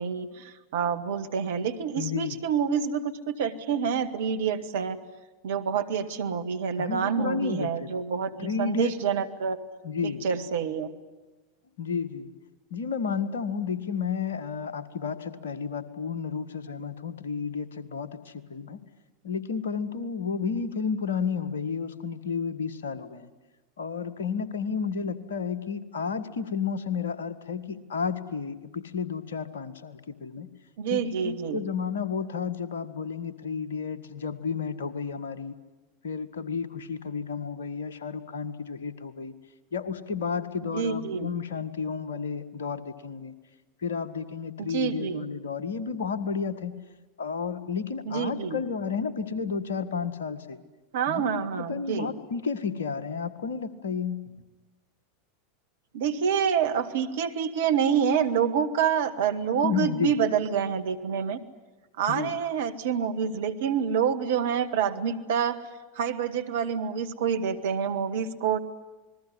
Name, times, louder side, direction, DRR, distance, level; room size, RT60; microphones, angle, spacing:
voice 1, 0.0-5.0 5.4-9.6 10.0-10.9 30.8-31.6 40.6-41.3 44.6-45.3 48.1-48.6 50.9-52.1 55.9-61.4 62.0-65.6 66.0-68.6, right 7 dB, 60° right, 7 dB, 1.7 m, -27 dB
voice 2, 2.0-2.4 6.8-7.9 8.4-8.9 9.8-10.2 11.8-12.3 12.7-18.8 19.2-23.3 23.8-30.5 30.9-35.5 36.0-39.3 39.7-43.3 43.8-46.7 47.2-50.6 51.1-54.2 59.6-60.1 62.1-62.3, left 6 dB, 65° left, 12 dB, 1.6 m, -32 dB
28.0 x 21.0 x 9.9 m, 1.1 s
figure-of-eight pair, 85°, 0 cm